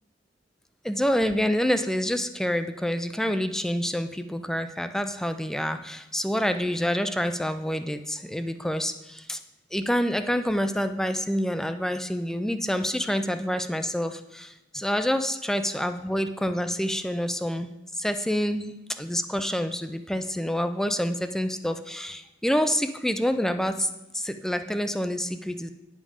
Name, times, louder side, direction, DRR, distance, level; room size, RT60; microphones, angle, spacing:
voice 1, 0.8-9.4 9.7-23.9 24.1-25.7, equal, 5° left, 9 dB, 0.4 m, -27 dB
10.0 x 5.3 x 4.9 m, 0.97 s
head